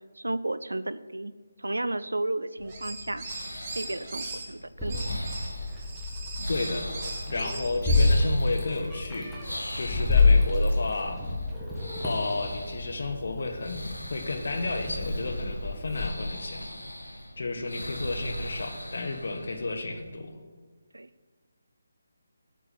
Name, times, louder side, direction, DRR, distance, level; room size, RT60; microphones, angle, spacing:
voice 1, 0.2-1.3 1.6-3.3 3.8-5.0 20.9-21.1, right 2 dB, 80° right, 15 dB, 0.5 m, -32 dB
sound 1, 2.6-20.1, left 1 dB, 85° left, 1.4 m, -41 dB
sound 2, 2.6-4.4 4.9-8.2, right 3 dB, 30° right, 2.2 m, -39 dB
Meow, 4.8-16.1, left 3 dB, ahead, 1.9 m, -28 dB
voice 2, 6.5-6.9 7.3-9.4 9.7-11.2 12.0-13.8 14.1-16.7 17.4-20.4, left 3 dB, 60° left, 5 dB, 1.5 m, -32 dB
8.8 x 6.9 x 7.9 m, 1.4 s
figure-of-eight pair, 150°, 0 cm